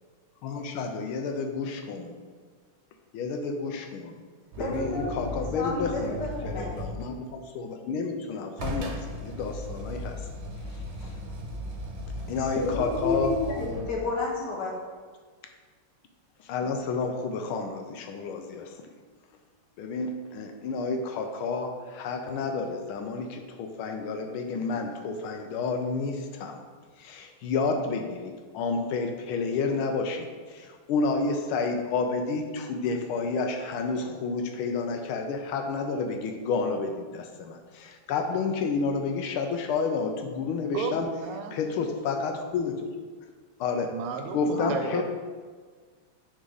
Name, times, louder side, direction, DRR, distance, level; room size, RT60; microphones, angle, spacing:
voice 1, 0.4-2.1 3.1-4.1 4.6-6.2 6.4-10.2 11.0-11.2 12.3-13.4 16.4-18.7 19.8-26.6 27.0-41.1 41.5-42.9 43.6-43.9 44.3-45.0, left 4 dB, 80° left, 4 dB, 1.4 m, -30 dB
sound 1, 4.5-7.2 8.6-14.2 17.0-17.1, left 1 dB, 65° right, 1.4 m, -37 dB
voice 2, 4.6-6.7 12.5-14.7 44.6-45.0, left 3 dB, 55° left, -3 dB, 1.5 m, -31 dB
voice 3, 40.7-41.6 43.9-45.0, right 5 dB, 80° right, 6 dB, 1.5 m, -33 dB
6.1 x 4.1 x 3.9 m, 1.5 s
omnidirectional pair, 2.4 m